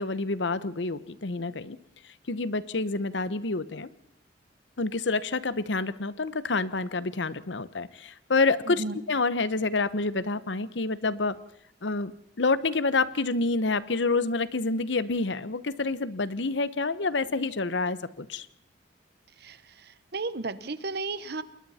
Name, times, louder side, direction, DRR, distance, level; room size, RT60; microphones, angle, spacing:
voice 1, 0.0-1.8 2.3-3.9 4.8-11.4 11.8-12.1 12.4-18.5, left 3 dB, 75° left, 16 dB, 1.0 m, -28 dB
voice 2, 8.6-9.0 19.4-21.4, right 3 dB, 60° right, 14 dB, 1.2 m, -34 dB
29.0 x 21.0 x 4.3 m, 0.73 s
head